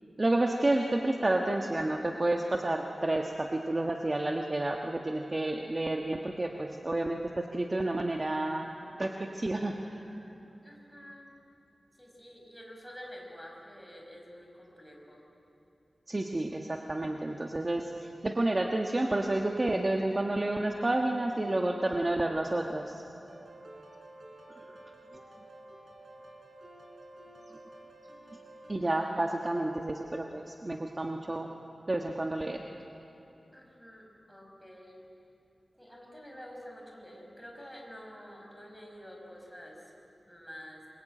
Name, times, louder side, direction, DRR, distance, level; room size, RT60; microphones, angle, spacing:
voice 1, 0.2-8.7 9.0-10.1 16.1-23.0 24.7-24.8 28.7-31.5 31.9-32.6, right 2 dB, 30° right, 2 dB, 1.4 m, -30 dB
voice 2, 10.6-11.3 12.0-15.2 33.5-35.0 35.8-39.9 40.3-40.8, equal, ahead, -1 dB, 5.4 m, -48 dB
sound 1, 23.3-29.2, right 1 dB, 80° right, 4.4 m, -51 dB
27.0 x 22.5 x 8.9 m, 2.8 s
wide cardioid pair, 100°, 0 cm